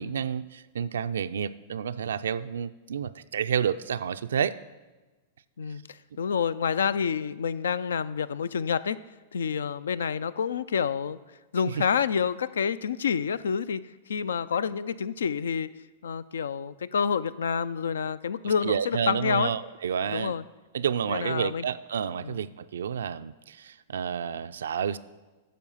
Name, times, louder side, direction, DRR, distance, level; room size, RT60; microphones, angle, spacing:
voice 1, 0.0-4.6 11.7-11.8 18.4-20.3 20.7-25.0, right 8 dB, 80° right, 13 dB, 0.4 m, -30 dB
voice 2, 5.6-9.0 9.3-11.2 11.5-13.8 14.1-15.7 16.0-19.5 20.1-20.4 21.1-21.7 22.2-22.4, left 7 dB, 85° left, 17 dB, 0.4 m, -28 dB
9.3 x 6.9 x 5.6 m, 1.2 s
hypercardioid pair, 125°, 0 cm